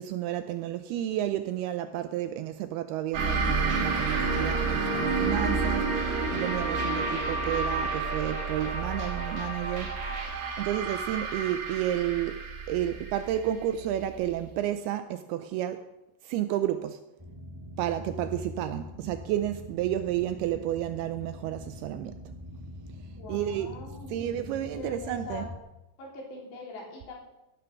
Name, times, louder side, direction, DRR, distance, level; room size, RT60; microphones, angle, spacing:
voice 1, 0.0-15.9 16.2-17.0 17.8-22.2 23.3-23.7 24.1-25.5, right 12 dB, 80° right, 2.3 m, -31 dB
sound 1, 3.1-14.3, right 3 dB, 50° right, 3.3 m, -30 dB
sound 2, 17.2-25.6, left 1 dB, 25° right, 0.6 m, -43 dB
voice 2, 23.1-24.5 24.8-25.5 26.0-27.2, left 3 dB, 80° left, 5.8 m, -42 dB
15.5 x 9.5 x 6.0 m
omnidirectional pair, 5.0 m